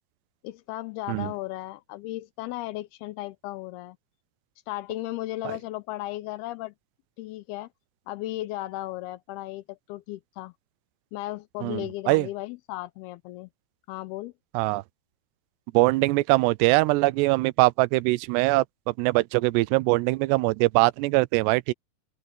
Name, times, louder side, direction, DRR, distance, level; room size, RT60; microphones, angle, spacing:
voice 1, 0.4-4.0 4.7-6.7 7.2-7.7 8.1-10.5 11.1-13.5 13.9-14.3, left 16 dB, 85° left, 2.5 m, -35 dB
voice 2, 11.6-12.3 14.5-14.8 15.7-21.7, right 22 dB, 90° right, 2.7 m, -22 dB
omnidirectional pair, 4.8 m